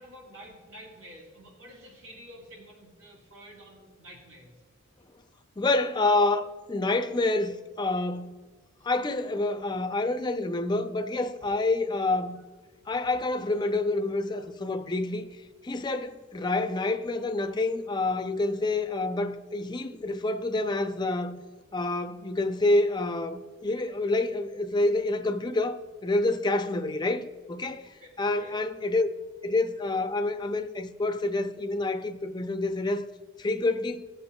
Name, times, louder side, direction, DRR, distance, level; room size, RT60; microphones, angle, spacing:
voice 1, 0.0-4.5 27.8-28.5, equal, 75° right, 2.8 m, -49 dB
voice 2, 5.6-8.3 8.8-12.4 12.9-15.3 15.6-21.4 21.7-29.1 29.4-33.0 33.4-34.1, left 2 dB, 20° left, 0.4 m, -28 dB
18.5 x 6.9 x 2.3 m
head